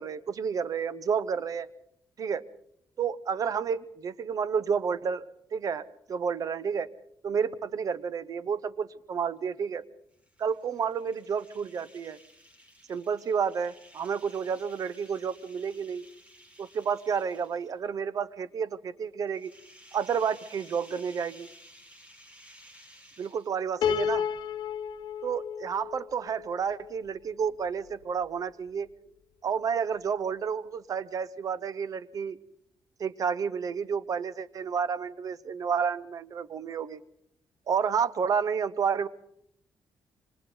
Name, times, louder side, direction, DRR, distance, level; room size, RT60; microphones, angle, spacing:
voice 1, 0.0-1.7 2.2-2.4 3.0-6.9 7.2-9.8 10.4-12.2 12.9-16.0 16.6-19.5 19.9-21.5 23.2-24.2 25.2-28.9 29.4-32.4 33.0-37.0 37.7-39.1, right 6 dB, 50° right, 17 dB, 0.9 m, -30 dB
sound 1, 10.1-17.9 19.3-23.7, equal, 15° right, 5.1 m, -55 dB
Piano, 23.8-27.0, left 8 dB, 75° left, 1.0 m, -32 dB
28.5 x 25.0 x 3.9 m, 0.73 s
cardioid pair, 135°, 8 cm